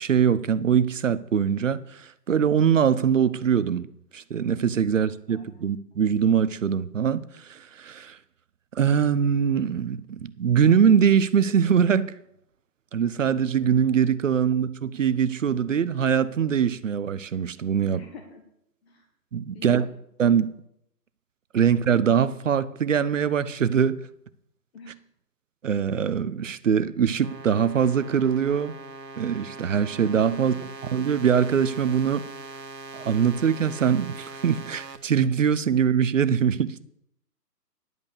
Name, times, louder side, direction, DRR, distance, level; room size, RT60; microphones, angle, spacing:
voice 1, 0.0-3.9 4.1-8.2 8.7-12.1 12.9-18.0 19.3-19.8 20.2-20.5 21.5-24.0 25.6-28.8 29.2-30.5 30.9-32.3 32.9-36.8, right 7 dB, 50° right, 0.6 m, -22 dB
voice 2, 17.9-18.4 18.8-19.1 19.5-20.0 24.7-25.0 30.3-30.7, left 4 dB, 40° left, 1.3 m, -45 dB
sound 1, 27.2-35.0, right 3 dB, 80° right, 1.4 m, -41 dB
10.5 x 5.2 x 8.1 m
figure-of-eight pair, 145°, 49 cm